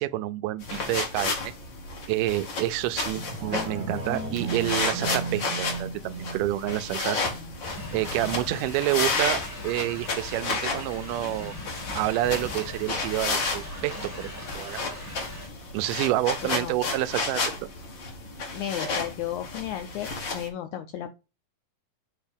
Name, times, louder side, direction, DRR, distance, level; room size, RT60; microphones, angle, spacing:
voice 1, 0.0-1.5 2.1-7.2 7.9-11.5 11.9-14.3 14.6-14.8 15.7-17.4, right 15 dB, 80° right, 2.0 m, -28 dB
sound 1, 0.6-20.5, left 3 dB, 45° left, 1.7 m, -32 dB
sound 2, 3.1-8.2 8.6-8.7, right 3 dB, 40° right, 1.0 m, -35 dB
Thunder / Rain, 7.6-15.5, left 2 dB, 10° left, 1.2 m, -40 dB
voice 2, 16.4-16.7 18.5-21.1, left 11 dB, 80° left, 1.7 m, -34 dB
8.1 x 2.7 x 5.2 m
omnidirectional pair, 3.9 m